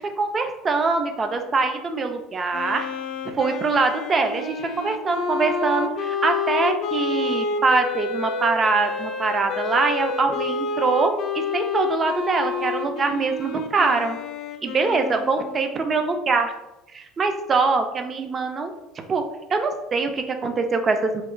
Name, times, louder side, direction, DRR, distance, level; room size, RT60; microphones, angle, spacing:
voice 1, 0.2-2.9 3.3-14.2 14.6-16.5 16.9-18.7 19.1-19.2 19.5-21.2, right 4 dB, 30° right, 6 dB, 0.3 m, -23 dB
Wind instrument woodwind instrument, 2.5-15.9, left 4 dB, 55° left, 0.3 m, -29 dB
2.8 x 2.1 x 2.4 m, 0.96 s
supercardioid pair, 115°, 0 cm